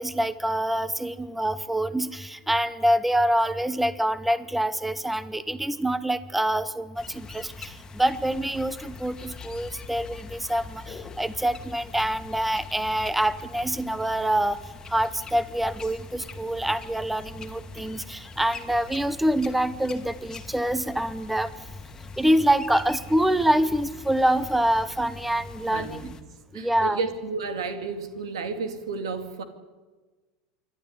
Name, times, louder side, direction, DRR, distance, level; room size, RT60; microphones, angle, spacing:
voice 1, 0.0-14.6 14.9-21.5 22.2-26.1 26.5-27.0, right 1 dB, 5° right, 16 dB, 0.9 m, -26 dB
sound 1, 6.9-26.2, left 4 dB, 25° left, 2.0 m, -43 dB
voice 2, 25.7-26.1 26.5-29.4, right 4 dB, 85° right, 8 dB, 2.5 m, -32 dB
26.5 x 11.5 x 9.9 m, 1.3 s
hypercardioid pair, 100°, 3 cm